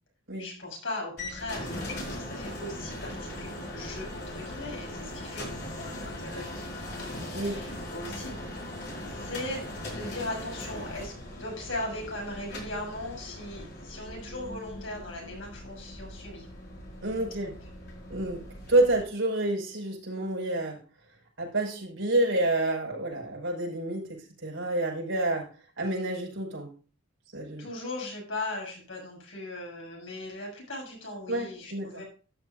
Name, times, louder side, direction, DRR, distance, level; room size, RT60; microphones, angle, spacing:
voice 1, 0.4-8.4 9.1-16.5 27.6-32.0, left 2 dB, 70° left, 0 dB, 6.7 m, -39 dB
sound 1, 1.2-19.0, left 1 dB, 50° left, 4.9 m, -40 dB
voice 2, 17.0-17.5 18.1-20.8 21.4-25.5 25.8-26.7 27.3-27.7 31.3-32.0, right 2 dB, 70° right, -1 dB, 5.5 m, -28 dB
13.0 x 11.0 x 2.6 m, 0.38 s
head